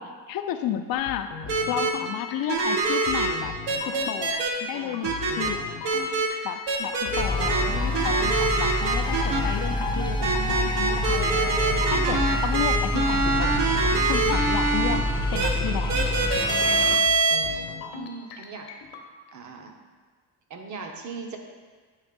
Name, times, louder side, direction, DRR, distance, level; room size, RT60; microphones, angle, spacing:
voice 1, 0.0-1.3 1.7-3.5 3.9-5.6 6.4-11.4 11.9-13.6 14.1-16.1, left 10 dB, 60° left, 7 dB, 0.6 m, -32 dB
sound 1, 0.9-19.1, left 7 dB, 85° left, 0.9 m, -39 dB
sound 2, 1.5-1.9 2.5-3.3 3.7-4.5 5.0-5.5 5.8-6.3 6.7-7.6 7.9-9.4 10.2-14.9 15.3-15.5 15.9-17.4, right 3 dB, 80° right, 1.1 m, -24 dB
voice 2, 4.7-5.0 5.4-5.6 7.4-7.5 17.9-18.7 19.3-19.7 20.5-21.4, right 5 dB, 45° right, 3 dB, 0.9 m, -39 dB
sound 3, 7.2-17.0, left 1 dB, 10° left, 0.6 m, -27 dB
8.3 x 3.0 x 5.2 m, 1.5 s
cardioid pair, 110°, 41 cm